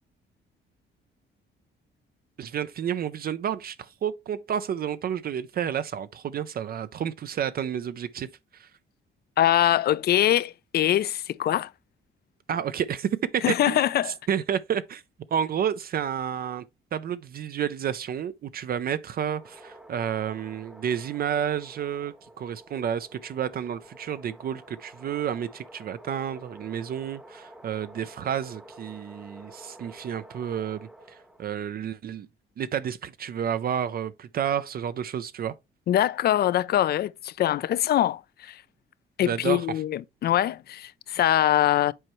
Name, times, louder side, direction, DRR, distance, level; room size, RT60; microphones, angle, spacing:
voice 1, 2.4-8.3 8.5-8.7 12.5-13.8 14.3-15.0 15.3-16.7 16.9-32.3 32.6-35.5 39.2-39.6, right 9 dB, 50° right, 0.4 m, -30 dB
voice 2, 9.4-11.7 13.4-14.1 35.9-38.6 39.2-41.9, left 12 dB, 55° left, 0.4 m, -23 dB
sound 1, 19.1-31.6, right 1 dB, 5° right, 0.8 m, -49 dB
7.7 x 4.4 x 3.0 m
cardioid pair, 90°, 20 cm